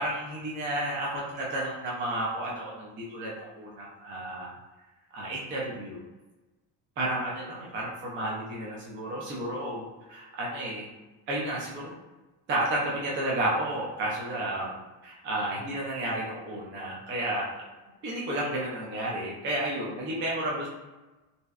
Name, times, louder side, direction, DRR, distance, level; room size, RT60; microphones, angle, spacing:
voice 1, 0.0-4.5 5.1-6.0 7.0-10.9 11.3-11.9 12.5-14.8 15.0-17.6 18.0-20.7, right 1 dB, 30° right, -4 dB, 0.4 m, -32 dB
2.6 x 2.0 x 2.3 m, 1.1 s
cardioid pair, 150°, 44 cm